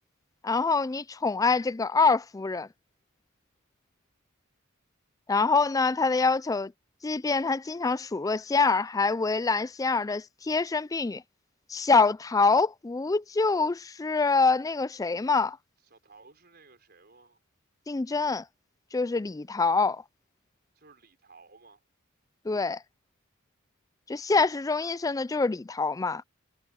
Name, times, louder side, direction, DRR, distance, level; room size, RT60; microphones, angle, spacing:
voice 1, 0.4-2.7 5.3-6.7 7.0-11.2 11.7-15.6 17.9-18.4 18.9-20.0 22.5-22.8 24.1-26.2, left 4 dB, 15° left, 0.3 m, -25 dB
voice 2, 15.8-17.4 20.7-21.8, right 4 dB, 45° right, 4.9 m, -56 dB
head